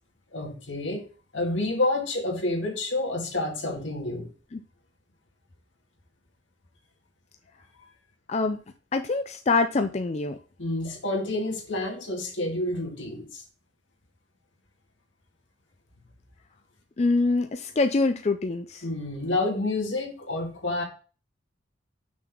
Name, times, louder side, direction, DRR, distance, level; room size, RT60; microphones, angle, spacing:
voice 1, 0.3-1.0 1.3-4.3 10.6-13.4 18.8-20.8, left 2 dB, 80° left, 1 dB, 2.0 m, -29 dB
voice 2, 8.3-8.6 8.9-10.4 17.0-18.9, left 3 dB, 35° left, 7 dB, 0.4 m, -25 dB
6.0 x 4.1 x 5.9 m, 0.37 s
head